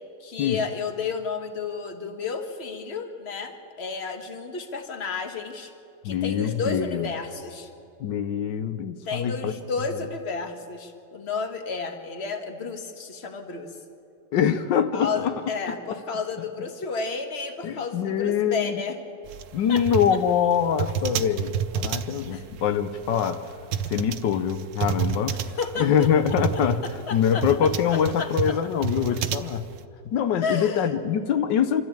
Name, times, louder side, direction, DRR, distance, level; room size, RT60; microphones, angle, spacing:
voice 1, 0.2-5.7 6.0-7.7 9.0-13.7 14.9-19.0 19.7-19.8 20.1-20.2 22.3-22.4 25.3-27.4 27.9-28.6 30.4-30.9, left 4 dB, 35° left, 6 dB, 1.7 m, -32 dB
voice 2, 6.0-7.1 8.0-9.5 14.3-15.3 17.6-18.8 19.5-23.5 23.9-25.4 25.8-26.8 27.1-29.7 30.1-31.8, left 8 dB, 85° left, 10 dB, 1.5 m, -24 dB
sound 1, 19.3-29.8, right 8 dB, 90° right, 1.4 m, -30 dB
26.0 x 13.5 x 8.9 m, 2.7 s
omnidirectional pair, 1.9 m